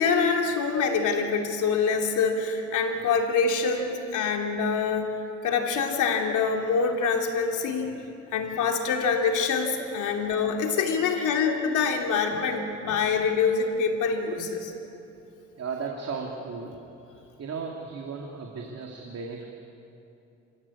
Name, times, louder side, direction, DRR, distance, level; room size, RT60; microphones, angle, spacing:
voice 1, 0.0-8.0 8.3-14.7, left 5 dB, 80° left, 2 dB, 3.0 m, -25 dB
voice 2, 15.6-16.8 17.1-19.5, right 5 dB, 55° right, 0 dB, 2.6 m, -35 dB
27.5 x 16.0 x 8.6 m, 2.8 s
cardioid pair, 90°, 30 cm